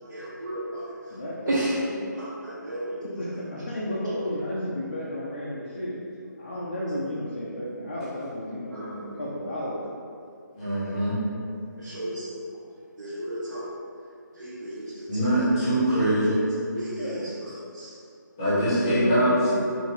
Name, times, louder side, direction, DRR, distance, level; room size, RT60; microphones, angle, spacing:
voice 1, 0.0-1.1 1.5-1.8 2.2-3.1 8.7-9.2 11.8-12.6 13.0-13.7 14.3-15.4 15.9-16.3 16.8-17.9, right 1 dB, 70° right, -8 dB, 0.8 m, -34 dB
voice 2, 1.1-2.1 3.2-6.0 6.4-9.8 11.6-12.1 17.0-17.4 18.5-19.7, equal, 35° left, -7 dB, 0.4 m, -32 dB
voice 3, 10.5-11.2 15.1-16.4 18.4-19.3, right 1 dB, 10° left, -12 dB, 0.7 m, -23 dB
4.6 x 2.6 x 2.9 m, 2.4 s
hypercardioid pair, 180°, 10 cm